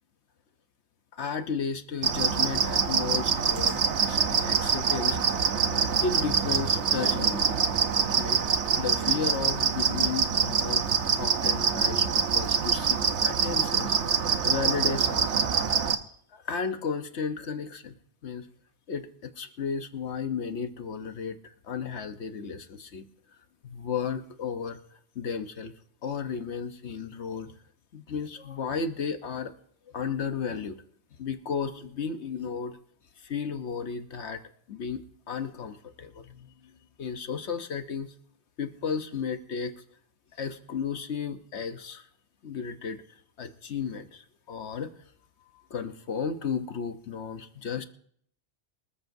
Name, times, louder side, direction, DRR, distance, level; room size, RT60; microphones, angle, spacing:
voice 1, 1.1-5.5 6.0-7.5 8.2-8.4 8.8-14.0 14.4-15.3 16.3-17.9 18.2-18.5 18.9-23.0 23.6-24.8 25.1-25.7 26.0-27.5 27.9-29.5 29.9-30.8 31.2-32.8 33.2-34.4 34.7-36.7 37.0-38.1 38.6-39.7 40.4-42.1 42.4-44.9 45.7-47.8, left 6 dB, 70° left, 8 dB, 1.2 m, -34 dB
sound 1, 2.0-16.0, right 6 dB, 75° right, 1.2 m, -25 dB
24.5 x 14.0 x 2.7 m, 0.63 s
omnidirectional pair, 1.2 m